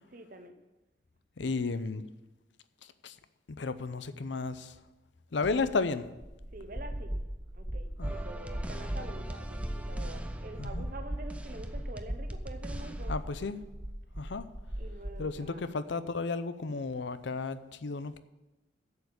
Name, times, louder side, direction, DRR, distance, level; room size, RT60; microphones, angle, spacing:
voice 1, 0.1-0.6 6.5-7.2 7.5-13.1 14.8-15.6, right 2 dB, 50° right, 8 dB, 0.9 m, -46 dB
voice 2, 1.4-2.0 3.0-3.1 3.6-4.7 5.3-6.1 8.0-8.2 10.6-10.9 13.1-13.6 14.2-14.5 15.2-18.2, left 4 dB, 75° left, 13 dB, 0.6 m, -33 dB
sound 1, 6.2-15.4, right 1 dB, 25° right, 1.3 m, -38 dB
sound 2, 8.0-13.1, right 1 dB, 5° right, 0.5 m, -43 dB
8.0 x 7.2 x 8.1 m, 1.0 s
head